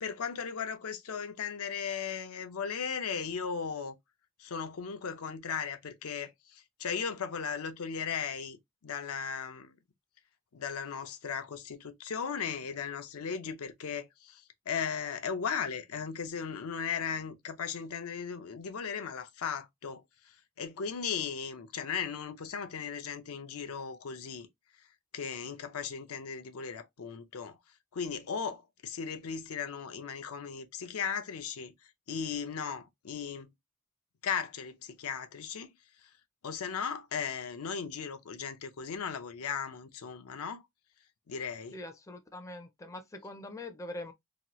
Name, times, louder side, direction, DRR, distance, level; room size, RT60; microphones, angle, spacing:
voice 1, 0.0-4.0 4.4-9.8 10.5-24.5 25.1-27.6 27.9-31.7 32.1-33.5 34.2-35.7 36.4-40.6 41.3-41.8, left 6 dB, 80° left, 0.5 m, -37 dB
voice 2, 41.7-44.1, left 1 dB, 15° left, 0.4 m, -43 dB
2.9 x 2.3 x 2.9 m
head